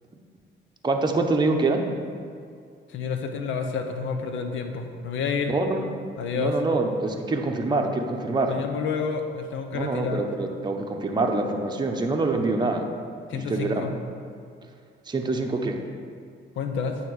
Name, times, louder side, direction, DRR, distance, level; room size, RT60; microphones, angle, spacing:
voice 1, 0.8-1.9 5.5-5.9 6.3-8.6 9.7-12.9 13.3-13.9 15.1-15.8, right 3 dB, 20° right, 2 dB, 0.8 m, -25 dB
voice 2, 2.9-5.5 6.2-6.6 8.5-10.2 13.3-13.9 16.6-17.0, left 5 dB, 75° left, 5 dB, 0.8 m, -29 dB
9.0 x 3.5 x 6.3 m, 2.2 s
cardioid pair, 90°, 20 cm